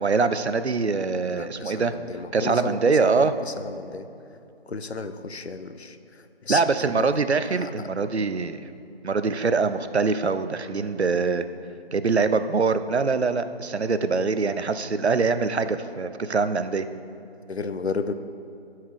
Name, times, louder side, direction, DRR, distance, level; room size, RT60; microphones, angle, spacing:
voice 1, 0.0-1.9 2.3-3.3 6.5-8.6 9.0-11.5 11.9-16.9, right 4 dB, 85° right, 11 dB, 0.7 m, -23 dB
voice 2, 1.3-4.1 4.7-7.1 7.5-7.7 17.5-18.1, left 4 dB, 80° left, 10 dB, 0.7 m, -33 dB
13.0 x 4.7 x 4.8 m, 2.7 s
figure-of-eight pair, 170°, 32 cm